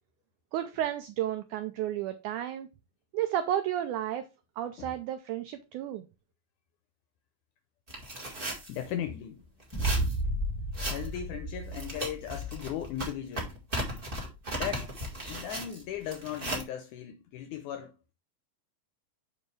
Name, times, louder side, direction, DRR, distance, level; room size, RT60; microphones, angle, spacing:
voice 1, 0.5-2.7 3.1-4.2 4.6-6.0, right 11 dB, 90° right, 1.7 m, -32 dB
sound 1, 7.9-8.8 9.6-10.2 10.7-11.2 11.6-16.6, right 1 dB, 70° right, 0.5 m, -36 dB
voice 2, 8.7-9.4 9.7-10.2 10.9-13.6 14.5-14.9 15.3-17.9, left 10 dB, 80° left, 1.8 m, -37 dB
sound 2, 9.7-12.7, right 1 dB, 10° right, 1.5 m, -32 dB
7.0 x 5.4 x 3.2 m
omnidirectional pair, 4.1 m